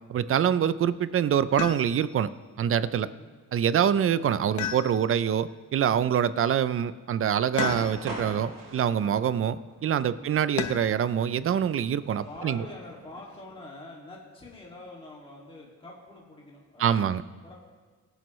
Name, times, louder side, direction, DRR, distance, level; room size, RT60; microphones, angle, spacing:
voice 1, 0.1-2.3 2.6-3.1 3.5-12.6 16.8-17.2, right 9 dB, 45° right, 16 dB, 0.4 m, -25 dB
sound 1, 1.6-2.2 4.6-5.4 7.6-8.3 10.6-11.1 12.8-13.4, left 9 dB, 60° left, 0.7 m, -34 dB
voice 2, 3.0-3.3 10.1-10.4 12.2-17.5, left 2 dB, 15° left, -4 dB, 2.2 m, -46 dB
sound 2, 7.5-13.6, right 2 dB, 80° right, 3.6 m, -42 dB
23.5 x 9.1 x 3.1 m, 1.4 s
wide cardioid pair, 150°, 32 cm